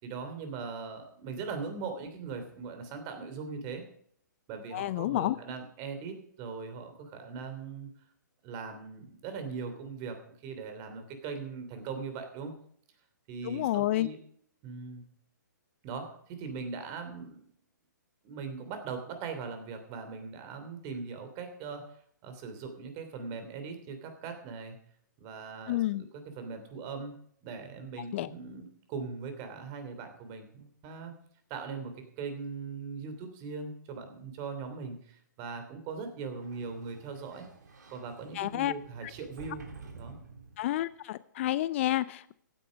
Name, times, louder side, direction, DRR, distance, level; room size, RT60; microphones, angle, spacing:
voice 1, 0.0-3.8 4.5-7.9 8.4-12.5 13.3-14.2 14.6-15.0 15.8-17.4 18.2-24.8 25.2-27.1 27.4-31.1 31.5-37.5 37.9-39.6 39.9-40.2, right 5 dB, 30° right, 7 dB, 3.0 m, -40 dB
voice 2, 4.7-5.4 13.4-14.1 25.7-26.0 28.1-28.3 38.3-38.7 40.6-42.3, left 15 dB, 40° left, 17 dB, 0.5 m, -29 dB
Sliding door, 36.2-40.9, right 4 dB, 65° right, 3.3 m, -51 dB
15.5 x 9.2 x 5.1 m, 0.64 s
figure-of-eight pair, 125°, 10 cm